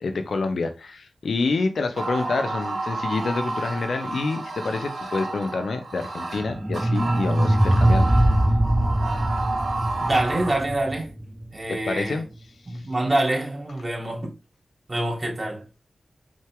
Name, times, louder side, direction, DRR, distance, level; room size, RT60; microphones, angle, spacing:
voice 1, 0.0-8.1 11.7-12.2 12.7-12.9, left 3 dB, 80° left, 0.8 m, -27 dB
sound 1, 1.9-10.6, right 2 dB, 80° right, 1.4 m, -31 dB
sound 2, 6.4-11.5, right 1 dB, 15° right, 1.0 m, -22 dB
voice 2, 10.0-11.1 11.5-12.2 12.7-14.3 14.9-15.6, right 1 dB, 35° right, 3.3 m, -26 dB
6.3 x 4.5 x 3.7 m
cardioid pair, 45°, 0 cm